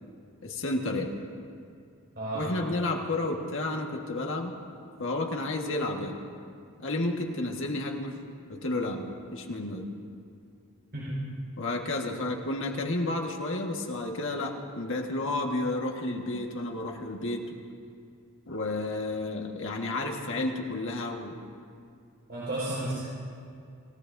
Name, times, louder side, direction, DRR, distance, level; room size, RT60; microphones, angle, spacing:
voice 1, 0.4-1.1 2.3-4.6 5.0-6.2 6.8-8.2 8.5-9.9 11.6-17.6 18.5-21.4, left 2 dB, 60° left, 1 dB, 1.6 m, -31 dB
voice 2, 2.1-2.7 10.9-11.2 22.3-23.0, right 1 dB, 50° right, -9 dB, 5.0 m, -33 dB
28.0 x 17.0 x 2.7 m, 2.4 s
head